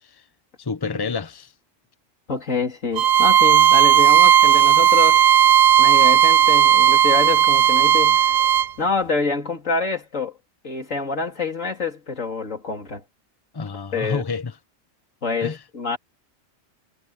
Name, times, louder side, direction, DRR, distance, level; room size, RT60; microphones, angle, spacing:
voice 1, 0.6-1.5 13.5-14.5 15.4-15.6, left 4 dB, 20° left, 0.8 m, -28 dB
voice 2, 2.3-5.2 5.8-8.3 8.8-10.3 10.6-13.0 13.9-14.2 15.2-16.0, left 4 dB, 75° left, 3.6 m, -26 dB
Bowed string instrument, 3.0-8.7, right 10 dB, 85° right, 1.1 m, -15 dB
omnidirectional pair, 1.4 m